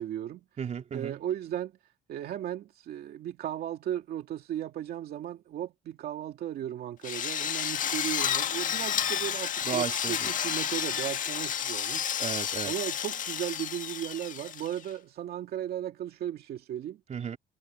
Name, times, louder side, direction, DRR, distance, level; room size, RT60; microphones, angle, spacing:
voice 1, 0.0-0.4 0.9-1.7 2.1-12.1 12.6-17.0, right 11 dB, 65° right, 2.5 m, -36 dB
voice 2, 0.6-1.2 9.7-10.3 12.2-12.7 17.1-17.4, right 8 dB, 45° right, 3.6 m, -34 dB
Drill, 7.0-14.9, left 9 dB, 50° left, 1.7 m, -31 dB
cardioid pair, 110°, 17 cm